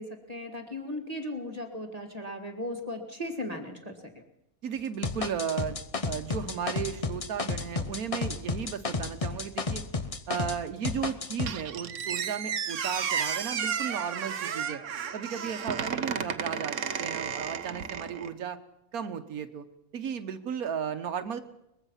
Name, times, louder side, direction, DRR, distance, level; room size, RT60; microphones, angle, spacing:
voice 1, 0.0-4.2, left 1 dB, 25° right, 3 dB, 2.0 m, -37 dB
voice 2, 4.6-9.9 10.3-14.8 15.1-18.6 18.9-19.7 19.9-21.4, right 7 dB, 80° right, 8 dB, 1.4 m, -35 dB
sound 1, 5.0-10.6 10.8-11.5, left 4 dB, 30° left, 0.8 m, -32 dB
Squeak, 11.5-18.3, right 7 dB, 60° right, 1.2 m, -33 dB
22.5 x 21.0 x 5.6 m, 0.84 s
omnidirectional pair, 1.5 m